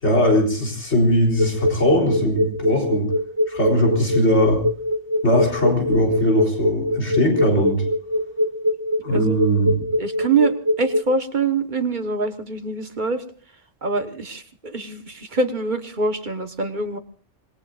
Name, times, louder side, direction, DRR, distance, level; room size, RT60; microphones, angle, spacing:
voice 1, 0.0-3.1 3.5-4.6 5.2-7.8 9.0-9.8, equal, 80° left, 0 dB, 4.2 m, -20 dB
sound 1, 1.4-11.0, left 1 dB, 20° right, 0.9 m, -22 dB
voice 2, 9.1-9.4 10.0-13.2 13.8-17.0, right 4 dB, 45° right, 7 dB, 1.4 m, -24 dB
26.0 x 20.5 x 2.5 m, 0.41 s
omnidirectional pair, 1.1 m